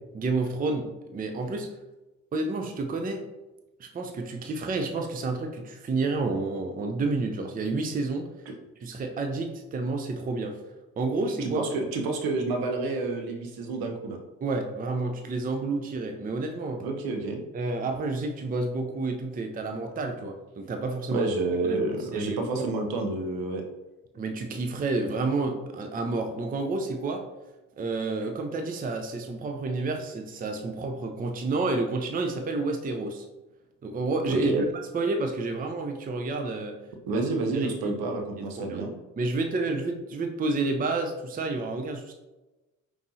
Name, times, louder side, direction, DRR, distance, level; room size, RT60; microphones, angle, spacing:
voice 1, 0.1-1.7 2.3-3.2 3.8-8.3 8.8-10.6 11.0-11.6 14.4-16.9 17.5-21.3 21.7-21.8 22.1-22.7 24.1-27.3 27.8-33.3 33.8-34.6 34.9-36.8 37.1-37.2 37.5-37.9 38.4-38.8 39.2-42.1, right 3 dB, 20° right, 4 dB, 0.5 m, -30 dB
voice 2, 11.4-14.2 16.8-17.4 21.1-23.6 34.3-34.6 37.1-39.0, right 3 dB, 65° right, 3 dB, 0.8 m, -29 dB
5.1 x 3.1 x 2.7 m, 1.1 s
hypercardioid pair, 50°, 40 cm